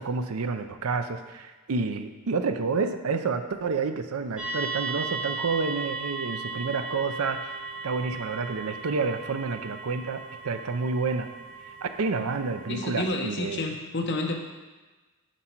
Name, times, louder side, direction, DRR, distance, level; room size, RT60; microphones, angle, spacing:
voice 1, 0.0-7.5 7.8-11.3 11.7-13.6, right 4 dB, 75° right, 8 dB, 0.5 m, -29 dB
sound 1, 4.4-13.1, right 3 dB, 5° right, 1.0 m, -36 dB
voice 2, 12.7-14.4, left 2 dB, 55° left, 1 dB, 0.8 m, -30 dB
7.4 x 5.3 x 4.5 m, 1.2 s
head